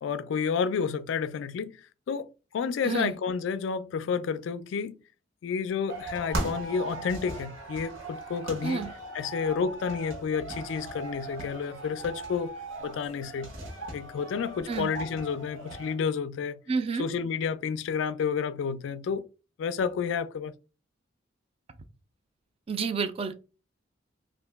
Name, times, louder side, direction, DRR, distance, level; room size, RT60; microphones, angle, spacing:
voice 1, 0.0-5.0 5.4-8.9 9.1-12.5 12.8-13.5 13.9-16.6 17.0-19.3 19.6-20.5, left 6 dB, 65° left, 0.3 m, -30 dB
sound 1, 5.9-15.9, right 2 dB, 85° right, 1.1 m, -38 dB
voice 2, 16.7-17.1 22.7-23.4, right 5 dB, 30° right, 0.3 m, -29 dB
2.8 x 2.6 x 3.3 m
head